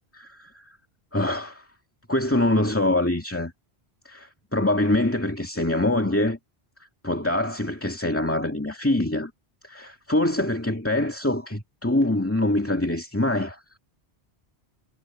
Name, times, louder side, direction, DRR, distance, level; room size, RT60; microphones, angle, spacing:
voice 1, 0.1-0.6 1.1-1.6 2.1-3.5 4.1-6.4 7.0-9.3 9.6-13.6, left 1 dB, 10° left, 2.3 m, -24 dB
omnidirectional pair, 1.1 m